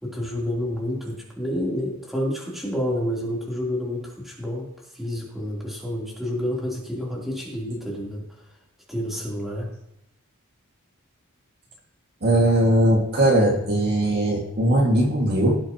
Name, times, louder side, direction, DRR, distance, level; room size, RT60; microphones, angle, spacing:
voice 1, 0.0-4.7 4.9-8.4 8.9-9.7, equal, ahead, -5 dB, 3.4 m, -29 dB
voice 2, 12.2-15.6, right 1 dB, 50° right, -1 dB, 2.1 m, -19 dB
17.5 x 8.2 x 3.0 m, 0.80 s
head